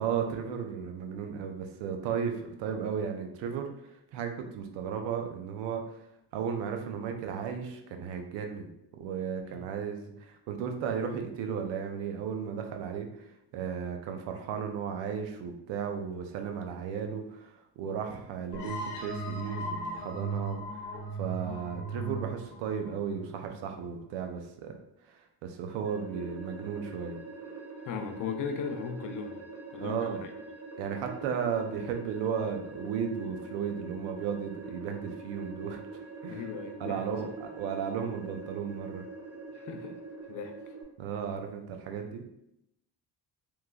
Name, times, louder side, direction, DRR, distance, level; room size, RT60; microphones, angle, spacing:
voice 1, 0.0-8.7 9.0-20.8 21.2-24.7 25.0-27.2 29.8-30.2 30.8-35.8 36.2-36.5 36.8-39.0 41.0-42.2, right 7 dB, 85° right, 5 dB, 0.5 m, -35 dB
sound 1, 18.5-24.0, right 2 dB, 80° left, 0.8 m, -37 dB
sound 2, 25.8-40.8, right 3 dB, 35° right, 0.8 m, -44 dB
voice 2, 27.8-29.4 29.7-30.3 36.3-37.0 39.5-40.0 40.3-40.7, left 6 dB, 50° left, 6 dB, 0.5 m, -37 dB
3.0 x 2.2 x 2.3 m, 0.79 s
cardioid pair, 80°, 43 cm